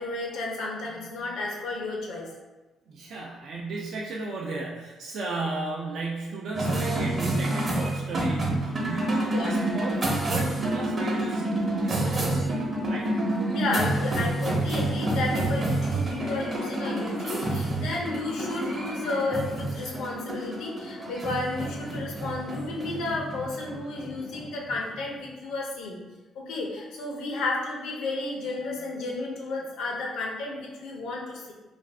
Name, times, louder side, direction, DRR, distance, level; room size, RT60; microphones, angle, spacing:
voice 1, 0.0-2.3 9.3-9.5 11.8-11.9 13.5-26.0 26.3-31.5, left 2 dB, 85° left, -2 dB, 0.7 m, -32 dB
voice 2, 2.9-11.5 11.8-13.1, right 3 dB, 70° right, -3 dB, 0.5 m, -35 dB
sound 1, 6.5-25.2, right 1 dB, 40° right, 0.8 m, -28 dB
2.5 x 2.4 x 3.3 m, 1.1 s
cardioid pair, 90°, 0 cm